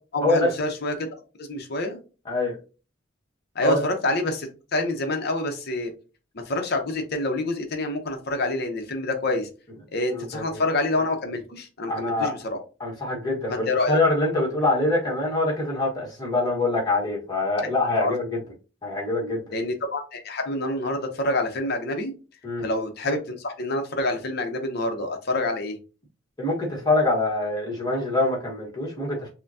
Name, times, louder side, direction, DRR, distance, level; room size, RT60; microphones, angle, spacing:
voice 1, 0.1-1.1 1.3-2.0 3.6-5.9 6.5-9.5 9.9-12.6 13.5-14.0 18.0-18.1 19.5-22.1 22.6-25.8, left 2 dB, 50° left, 5 dB, 0.7 m, -27 dB
voice 2, 10.1-10.6 11.9-12.3 12.8-18.4 18.8-19.4 22.4-22.6 26.4-29.3, left 2 dB, 20° left, -3 dB, 1.3 m, -24 dB
5.5 x 2.2 x 2.7 m, 0.34 s
head